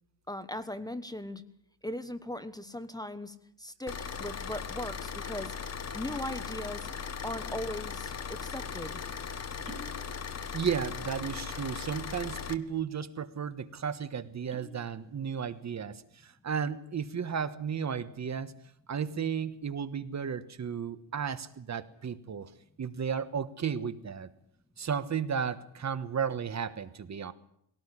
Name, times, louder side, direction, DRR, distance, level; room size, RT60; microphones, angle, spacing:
voice 1, 0.3-1.4 1.8-5.5 5.9-6.9 7.2-9.0, left 1 dB, 10° left, 11 dB, 1.2 m, -38 dB
Car / Idling, 3.9-12.5, left 6 dB, 35° left, 1.5 m, -38 dB
sound 1, 9.6-10.0 10.3-10.9 11.2-11.4 12.1-12.6 13.0-13.1 13.4-13.6 14.2-14.8 15.2-15.6, right 1 dB, 15° right, 6.2 m, -49 dB
voice 2, 10.5-18.5 18.9-22.5 22.8-24.3 24.8-27.3, right 7 dB, 40° right, 13 dB, 1.3 m, -34 dB
21.0 x 18.0 x 9.9 m, 0.71 s
cardioid pair, 150°, 43 cm